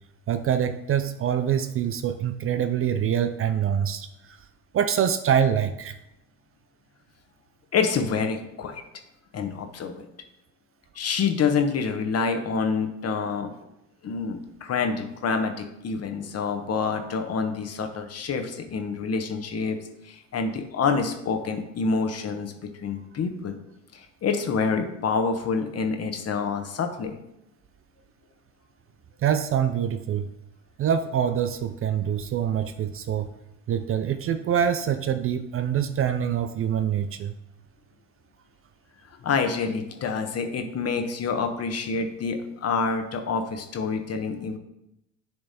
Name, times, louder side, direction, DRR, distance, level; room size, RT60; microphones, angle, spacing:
voice 1, 0.3-4.4 4.7-6.0 29.2-30.3 30.8-33.3 33.7-37.3, right 8 dB, 35° right, 11 dB, 0.5 m, -25 dB
voice 2, 7.7-8.8 9.3-10.0 10.9-13.5 14.0-19.8 20.0-22.5 22.8-23.6 23.9-27.2 39.2-44.6, left 5 dB, 40° left, 6 dB, 1.1 m, -27 dB
10.0 x 3.4 x 4.2 m, 0.85 s
hypercardioid pair, 75°, 37 cm